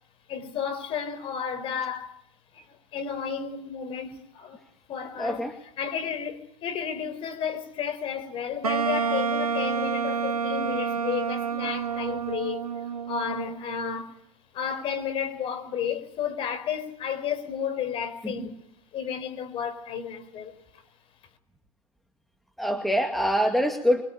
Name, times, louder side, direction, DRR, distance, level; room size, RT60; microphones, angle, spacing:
voice 1, 0.3-2.2 2.5-2.7 2.9-4.6 4.9-14.2 14.5-18.6 18.9-20.6, left 7 dB, 30° left, 4.6 m, -32 dB
voice 2, 5.2-5.5 18.2-18.5 22.6-24.0, equal, ahead, 2.2 m, -25 dB
Wind instrument woodwind instrument, 8.6-13.6, right 6 dB, 90° right, 1.0 m, -29 dB
25.0 x 24.0 x 9.0 m
hypercardioid pair, 115°, 19 cm